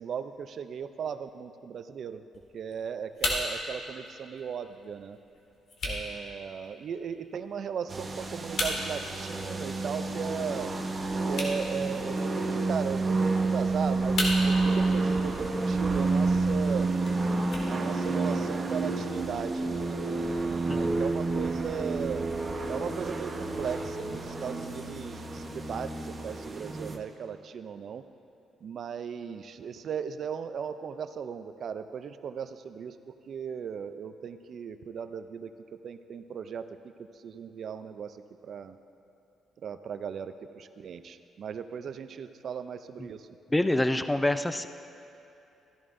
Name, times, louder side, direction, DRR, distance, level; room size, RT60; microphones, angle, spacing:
voice 1, 0.0-2.2 2.5-5.2 5.8-10.7 11.3-16.9 17.7-22.2 22.7-28.0 28.6-35.5 35.8-38.8 39.6-43.3, right 7 dB, 60° right, 10 dB, 0.4 m, -37 dB
sound 1, 2.3-18.3, left 1 dB, 65° left, 1.9 m, -39 dB
sound 2, 7.9-27.0, right 3 dB, 30° right, 0.9 m, -29 dB
voice 2, 43.5-44.7, left 1 dB, 10° left, 10 dB, 0.4 m, -26 dB
14.0 x 11.0 x 2.6 m, 2.8 s
cardioid pair, 90°, 0 cm